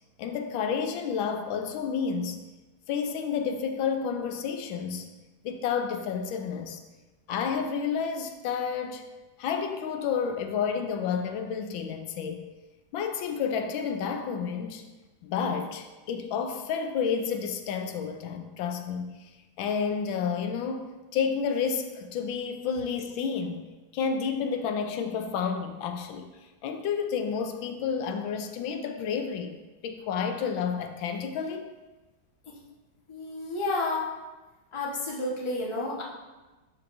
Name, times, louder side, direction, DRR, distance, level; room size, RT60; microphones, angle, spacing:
voice 1, 0.2-2.4 2.9-5.1 5.4-6.8 7.3-9.1 9.4-12.4 12.9-14.8 15.2-19.3 19.6-23.6 23.9-26.3 26.6-29.6 29.8-31.7, left 6 dB, 85° left, 6 dB, 1.4 m, -30 dB
voice 2, 33.1-34.1 34.7-36.0, left 2 dB, 20° left, -4 dB, 0.9 m, -31 dB
11.5 x 4.8 x 2.6 m, 1.2 s
omnidirectional pair, 2.1 m